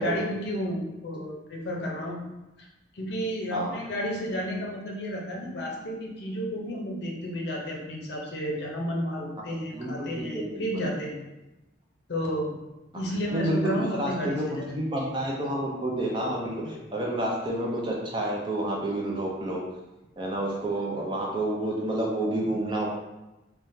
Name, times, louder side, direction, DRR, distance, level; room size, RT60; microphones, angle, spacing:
voice 1, 0.0-2.2 2.6-2.7 2.9-11.2 12.1-12.6 12.9-14.6, equal, 60° left, -1 dB, 0.6 m, -32 dB
voice 2, 9.7-10.9 13.3-19.6 20.2-22.9, right 1 dB, 25° right, -2 dB, 0.5 m, -29 dB
3.6 x 2.2 x 2.6 m, 1.0 s
head